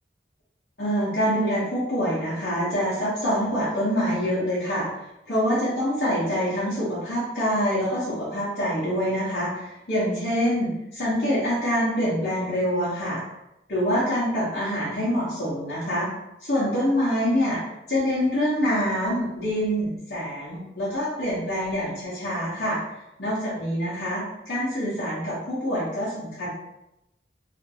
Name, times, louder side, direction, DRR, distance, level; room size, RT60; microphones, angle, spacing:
voice 1, 0.8-4.9 5.3-13.2 13.7-16.1 16.4-17.6 17.9-22.8 23.2-26.5, equal, 65° left, -10 dB, 0.9 m, -25 dB
2.8 x 2.5 x 2.7 m, 0.89 s
head